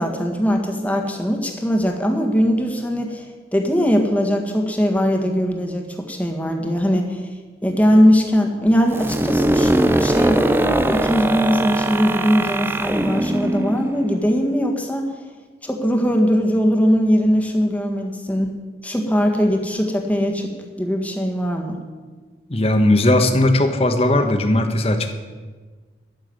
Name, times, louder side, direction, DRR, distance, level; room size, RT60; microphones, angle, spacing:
voice 1, 0.0-7.3 7.6-15.1 15.6-18.5 18.8-21.8, equal, 10° left, 2 dB, 1.6 m, -20 dB
sound 1, 8.9-14.6, right 1 dB, 10° right, 0.5 m, -21 dB
voice 2, 22.5-25.1, left 1 dB, 35° left, 7 dB, 1.2 m, -17 dB
13.0 x 7.2 x 9.6 m, 1.4 s
head